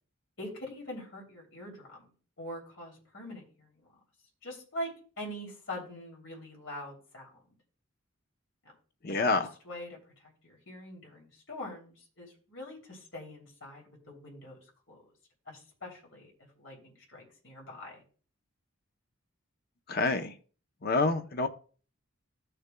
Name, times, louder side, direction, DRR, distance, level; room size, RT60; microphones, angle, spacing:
voice 1, 0.4-2.1 2.4-3.9 4.4-4.9 5.2-7.4 9.0-14.6 14.9-15.0 15.5-18.0, left 1 dB, 65° left, -2 dB, 3.1 m, -44 dB
voice 2, 9.0-9.5 19.9-20.3 20.8-21.5, left 3 dB, 45° left, 7 dB, 0.7 m, -27 dB
15.0 x 6.7 x 2.3 m, 0.40 s
head